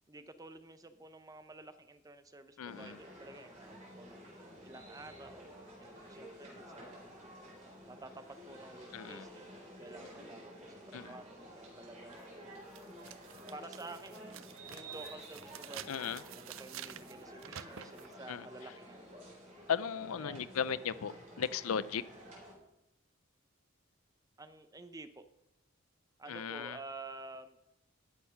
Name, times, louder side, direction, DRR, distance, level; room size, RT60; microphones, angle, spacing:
voice 1, 0.1-7.1 7.9-12.4 13.5-19.1 20.2-20.5 24.4-25.2 26.2-27.6, right 2 dB, 15° right, 0.6 m, -51 dB
voice 2, 2.6-3.0 8.9-9.3 10.9-11.1 15.9-16.2 18.3-18.5 19.7-22.0 26.3-26.8, left 7 dB, 80° left, 0.5 m, -36 dB
sound 1, 2.7-22.5, right 1 dB, 35° right, 4.0 m, -51 dB
sound 2, 12.1-12.2 12.7-18.1, right 10 dB, 65° right, 0.5 m, -50 dB
13.5 x 6.5 x 5.7 m
head